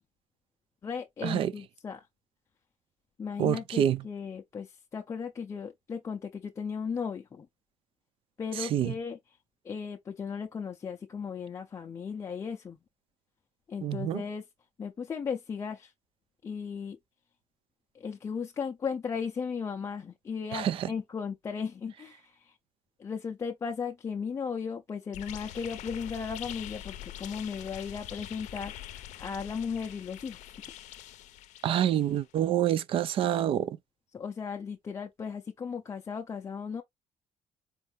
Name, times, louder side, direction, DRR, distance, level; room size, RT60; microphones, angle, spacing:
voice 1, 0.8-2.1 3.2-7.5 8.4-9.2 9.6-12.8 13.7-14.4 14.8-15.9 16.4-17.0 17.9-22.5 23.0-30.4 34.1-36.8, left 6 dB, 25° left, 0.4 m, -36 dB
voice 2, 3.4-4.0 8.6-8.9 13.8-14.2 20.5-20.9 31.6-33.8, right 10 dB, 50° right, 0.4 m, -27 dB
sound 1, 25.1-32.2, left 12 dB, 85° left, 0.5 m, -44 dB
4.4 x 2.5 x 3.3 m
cardioid pair, 170°, 12 cm